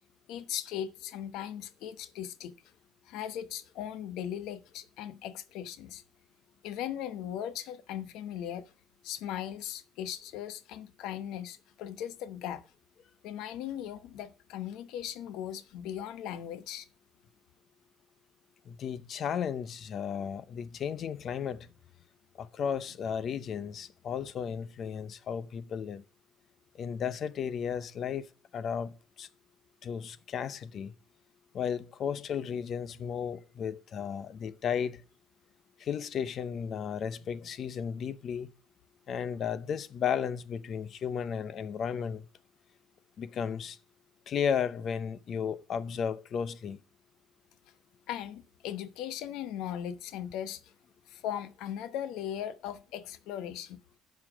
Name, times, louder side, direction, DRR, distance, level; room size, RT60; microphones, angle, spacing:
voice 1, 0.3-2.5 3.0-6.0 6.6-8.7 9.0-12.6 13.2-16.9 48.1-50.7 51.1-53.8, left 10 dB, 80° left, 0.9 m, -38 dB
voice 2, 18.7-21.7 22.4-26.0 26.8-28.3 28.5-29.3 29.8-30.9 31.5-35.0 35.8-38.5 39.1-42.3 43.2-43.8 44.3-46.8, left 7 dB, 45° left, 0.7 m, -34 dB
10.0 x 5.8 x 4.5 m
cardioid pair, 140°, 0 cm